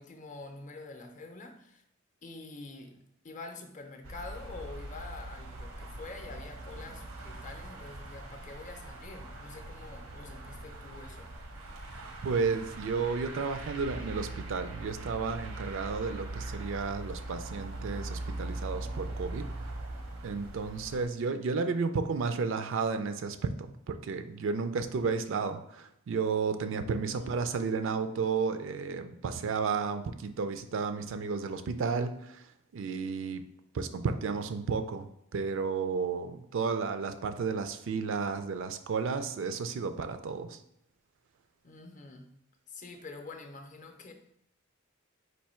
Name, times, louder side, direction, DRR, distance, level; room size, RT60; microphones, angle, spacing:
voice 1, 0.0-1.8 2.2-11.3 27.1-27.5 41.6-42.4 42.7-44.1, left 3 dB, 35° left, 4 dB, 0.6 m, -46 dB
sound 1, 4.0-21.1, right 2 dB, 85° right, 0.8 m, -41 dB
voice 2, 12.2-19.5 20.2-33.4 33.7-40.6, right 5 dB, 65° right, 9 dB, 0.4 m, -32 dB
4.5 x 2.6 x 4.3 m, 0.76 s
head